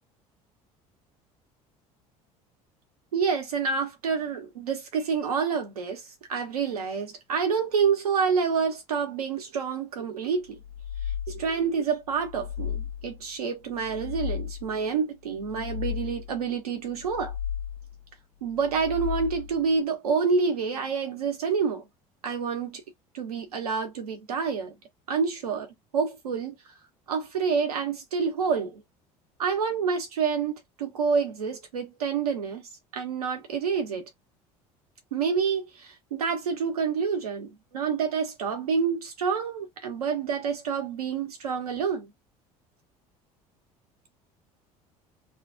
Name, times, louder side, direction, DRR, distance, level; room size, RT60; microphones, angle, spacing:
voice 1, 3.1-10.6 11.3-17.3 18.4-21.8 22.2-22.8 23.1-24.7 25.1-26.6 27.1-28.8 29.4-34.1 35.1-42.1, right 6 dB, 90° right, 1.1 m, -28 dB
sound 1, 10.6-11.6 12.1-13.2 13.7-14.8 15.3-16.4 16.9-18.0 18.6-19.7, left 9 dB, 80° left, 0.8 m, -35 dB
3.0 x 2.4 x 2.6 m
hypercardioid pair, 70°, 19 cm